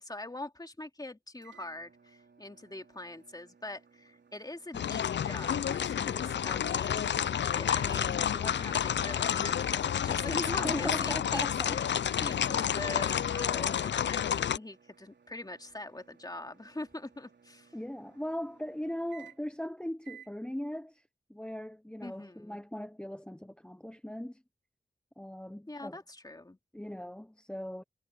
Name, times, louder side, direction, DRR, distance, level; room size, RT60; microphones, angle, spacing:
voice 1, 0.0-11.5 11.7-11.9 12.2-17.7 22.0-22.6 25.7-26.6, left 2 dB, 20° left, 2.7 m, -42 dB
sound 1, 1.4-19.6 20.0-20.4, right 7 dB, 75° right, 3.7 m, -61 dB
sound 2, 4.7-14.6, left 9 dB, 75° left, 0.4 m, -30 dB
voice 2, 10.5-11.8 17.7-21.0 21.3-24.4 25.2-26.0 26.7-27.8, equal, 5° left, 0.6 m, -39 dB
wide cardioid pair, 75°, 19 cm